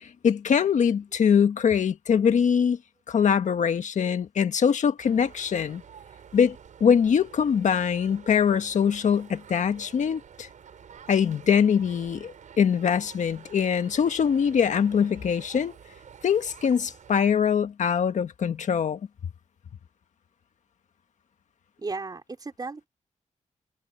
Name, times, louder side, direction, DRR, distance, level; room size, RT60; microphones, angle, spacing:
voice 1, 0.0-2.8 3.1-5.8 6.3-6.5 6.8-10.5 11.1-15.7 16.2-19.0, left 7 dB, 75° left, 1.5 m, -23 dB
sound 1, 5.0-17.4, right 7 dB, 85° right, 5.7 m, -49 dB
voice 2, 21.8-22.9, right 3 dB, 30° right, 4.9 m, -35 dB
wide cardioid pair, 120°, 13 cm